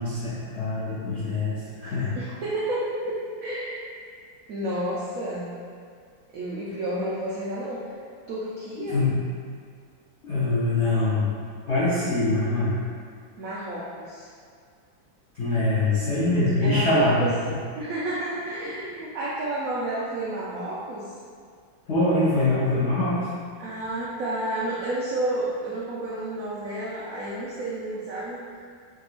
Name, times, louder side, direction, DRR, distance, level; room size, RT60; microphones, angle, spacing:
voice 1, 0.0-2.1 8.9-9.1 10.2-11.3 11.7-12.8 15.4-17.2 21.9-23.3, left 2 dB, 70° left, -12 dB, 0.6 m, -23 dB
voice 2, 2.1-3.8 4.5-5.5 6.3-8.0 8.3-9.0 13.4-14.3 16.6-17.4 17.8-21.1 23.6-28.4, right 1 dB, 85° right, -7 dB, 0.7 m, -30 dB
3.6 x 2.8 x 2.4 m, 2.1 s
omnidirectional pair, 2.1 m